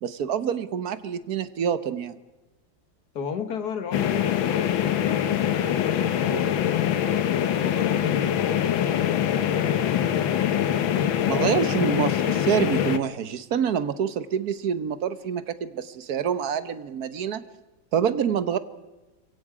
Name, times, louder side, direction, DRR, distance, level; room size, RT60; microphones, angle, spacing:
voice 1, 0.0-2.2 11.3-17.4 17.9-18.6, right 8 dB, 60° right, 13 dB, 1.3 m, -26 dB
voice 2, 3.1-6.6 7.3-9.7, left 7 dB, 55° left, 10 dB, 1.9 m, -35 dB
sound 1, 3.9-13.0, left 10 dB, 85° left, 1.8 m, -24 dB
24.5 x 23.5 x 4.9 m, 1.1 s
omnidirectional pair, 2.1 m